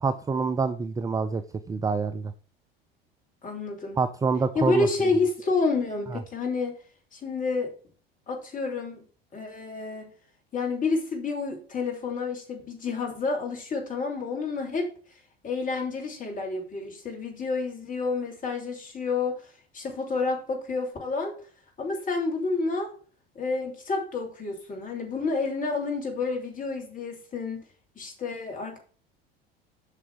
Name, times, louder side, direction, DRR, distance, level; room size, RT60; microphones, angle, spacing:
voice 1, 0.0-2.3 4.0-4.9 6.1-6.2, right 4 dB, 10° right, 10 dB, 0.5 m, -27 dB
voice 2, 3.4-4.0 4.5-6.7 7.1-7.7 8.3-9.1 9.3-10.1 10.5-14.9 15.4-19.4 19.7-21.3 21.8-22.9 23.3-27.6 27.9-28.8, left 3 dB, 25° left, 2 dB, 3.1 m, -29 dB
8.0 x 6.0 x 4.7 m, 0.41 s
figure-of-eight pair, 70°, 30 cm